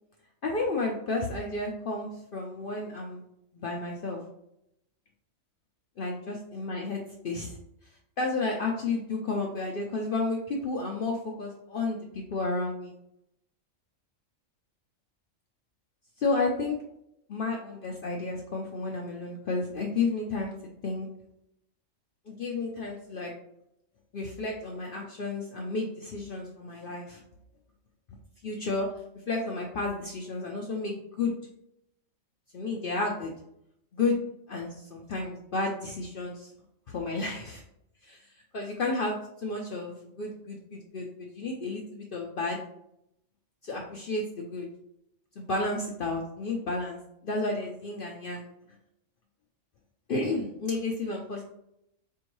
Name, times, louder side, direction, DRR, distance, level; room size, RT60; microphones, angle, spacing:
voice 1, 0.4-3.2 3.5-4.2 6.0-7.6 8.2-12.9 16.2-16.8 17.3-20.5 20.8-21.1 22.3-23.3 24.1-27.2 28.4-28.9 29.3-31.3 32.5-33.3 33.9-34.2 34.5-36.5 36.9-37.6 38.0-42.6 43.6-44.7 45.4-48.5 50.1-51.4, left 3 dB, 55° left, 0 dB, 0.6 m, -32 dB
4.5 x 3.0 x 2.6 m, 0.79 s
omnidirectional pair, 1.4 m